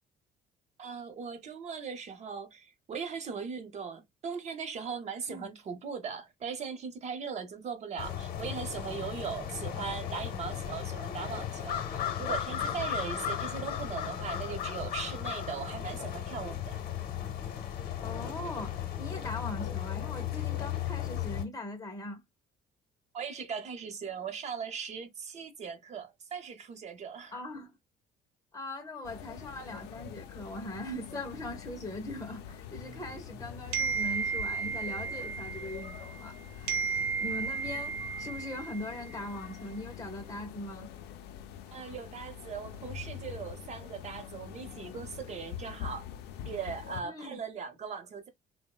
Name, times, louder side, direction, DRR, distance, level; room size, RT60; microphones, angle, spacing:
voice 1, 0.8-16.8 23.1-27.3 41.7-46.0 46.5-48.3, right 6 dB, 40° right, 0.6 m, -39 dB
sound 1, 8.0-21.4, left 10 dB, 65° left, 0.7 m, -35 dB
voice 2, 18.0-22.2 27.3-27.7 28.5-36.8 37.2-40.9 47.0-47.4, left 1 dB, 20° left, 0.5 m, -41 dB
sound 2, 29.0-47.0, left 9 dB, 85° left, 0.4 m, -45 dB
sound 3, 33.7-36.3 36.7-39.2, right 5 dB, 80° right, 0.5 m, -34 dB
3.0 x 2.0 x 2.2 m
cardioid pair, 110°, 17 cm